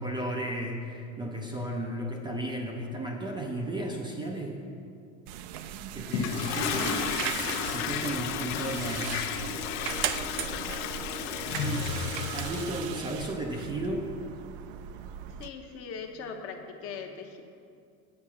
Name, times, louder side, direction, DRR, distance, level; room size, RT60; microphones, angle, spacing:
voice 1, 0.0-4.6 5.9-7.3 7.6-9.3 11.6-11.9 12.3-14.1, right 1 dB, 15° right, 0 dB, 0.4 m, -34 dB
sound 1, 5.3-15.5, right 11 dB, 65° right, 0.5 m, -38 dB
Toilet flush, 6.1-12.9, left 7 dB, 75° left, 0.7 m, -32 dB
sound 2, 9.4-13.7, left 3 dB, 60° left, 1.4 m, -45 dB
voice 2, 15.4-17.4, left 5 dB, 40° left, 3 dB, 0.9 m, -40 dB
8.6 x 5.8 x 7.1 m, 2.4 s
cardioid pair, 160°, 36 cm